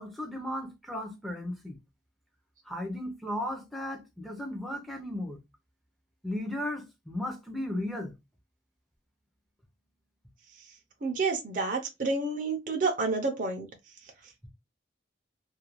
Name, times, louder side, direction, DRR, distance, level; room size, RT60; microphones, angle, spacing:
voice 1, 0.0-1.7 2.7-5.4 6.2-8.1, left 1 dB, ahead, 0.5 m, -35 dB
voice 2, 11.0-13.7, right 3 dB, 45° right, 0.5 m, -29 dB
2.4 x 2.2 x 2.9 m
head